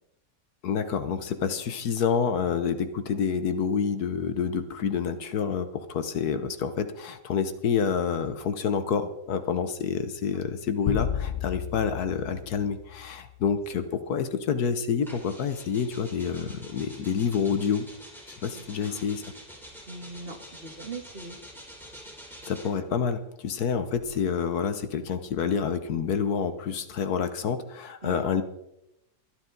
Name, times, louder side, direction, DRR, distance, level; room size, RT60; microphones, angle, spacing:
voice 1, 0.6-17.9 18.3-19.2 22.5-28.4, left 6 dB, 70° left, 10 dB, 1.4 m, -28 dB
sound 1, 10.9-13.4, left 10 dB, 85° left, 0.5 m, -32 dB
sound 2, 15.0-22.9 23.8-26.3, equal, ahead, 3.4 m, -47 dB
voice 2, 18.5-19.1 19.9-21.4 28.0-28.3, right 3 dB, 35° right, 4 dB, 1.8 m, -41 dB
23.5 x 10.5 x 3.9 m, 0.86 s
omnidirectional pair, 1.8 m